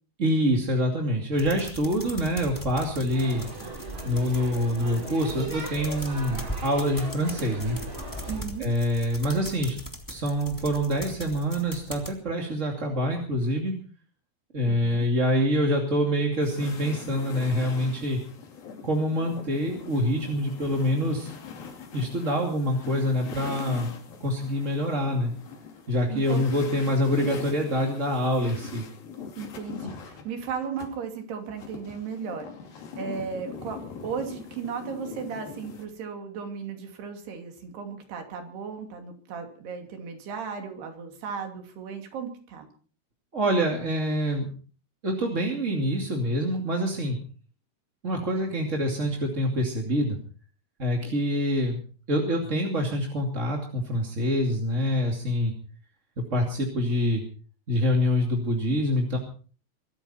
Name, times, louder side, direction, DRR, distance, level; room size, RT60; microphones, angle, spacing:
voice 1, 0.2-3.5 4.1-7.8 8.6-9.8 10.1-13.7 14.5-18.2 18.8-21.3 21.9-23.9 24.2-25.3 25.9-28.8 43.3-44.5 45.0-47.2 48.0-50.2 50.8-51.8 52.1-55.5 56.2-57.2 57.7-59.2, equal, 25° right, 1 dB, 2.0 m, -26 dB
sound 1, 1.4-12.1, equal, 10° left, 1.2 m, -40 dB
sound 2, 3.1-8.4, right 2 dB, 40° right, 8.0 m, -39 dB
voice 2, 8.3-8.7 14.7-15.1 26.1-26.5 29.4-32.5 33.0-33.8 34.0-42.7, right 6 dB, 70° right, 5 dB, 4.8 m, -35 dB
sound 3, 16.4-30.9 31.6-35.9, left 6 dB, 60° left, 4.4 m, -42 dB
23.0 x 14.0 x 4.3 m, 0.41 s
omnidirectional pair, 4.8 m